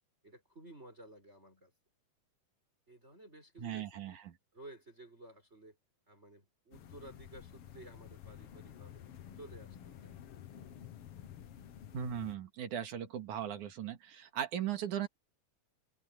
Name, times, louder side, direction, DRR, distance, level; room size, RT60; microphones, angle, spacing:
voice 1, 0.2-1.7 2.9-4.2 4.5-5.8 6.1-9.0 9.3-10.3, right 2 dB, 20° right, 6.7 m, -54 dB
voice 2, 3.6-4.1 11.9-15.1, right 9 dB, 85° right, 3.4 m, -38 dB
sound 1, 6.7-12.4, left 10 dB, 60° left, 2.0 m, -51 dB
omnidirectional pair, 3.4 m